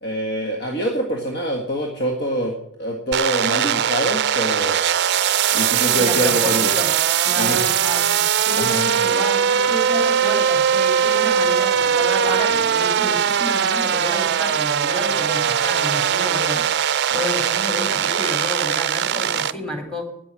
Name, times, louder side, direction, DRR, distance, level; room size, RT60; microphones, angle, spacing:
voice 1, 0.0-2.5 2.8-4.8 5.5-6.7 7.4-7.6 8.6-8.9, equal, 50° left, 1 dB, 1.8 m, -24 dB
sound 1, 3.1-19.5, right 8 dB, 55° right, 0.5 m, -20 dB
voice 2, 6.0-6.9 7.2-20.1, equal, 5° left, 5 dB, 2.6 m, -30 dB
11.0 x 8.4 x 9.8 m, 0.77 s
head